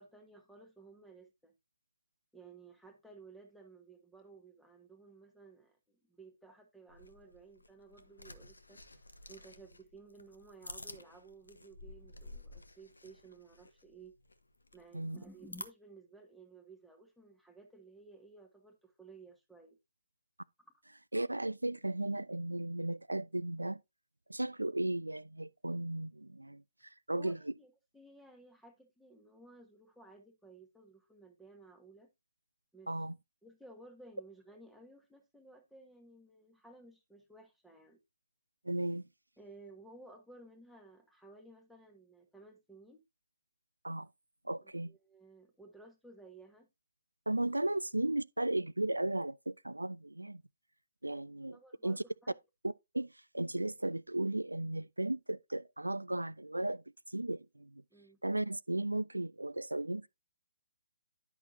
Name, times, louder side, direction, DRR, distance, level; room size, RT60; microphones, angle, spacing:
voice 1, 0.0-1.5 2.3-9.0 9.3-14.2 14.7-19.8 27.1-32.1 32.7-32.9 33.4-38.0 39.4-43.0 44.6-46.7 51.5-52.3 57.9-58.2, right 3 dB, ahead, 1.3 m, -56 dB
sound 1, 6.9-15.7, left 2 dB, 75° left, 1.0 m, -52 dB
voice 2, 21.1-23.8 24.3-27.4 32.9-33.1 38.6-39.1 43.8-44.1 44.4-44.9 47.3-50.4 51.0-51.6 51.8-52.0 52.6-56.8 57.1-57.8 58.2-60.1, right 1 dB, 80° right, 0.3 m, -35 dB
10.5 x 5.9 x 2.7 m
figure-of-eight pair, 135°, 0 cm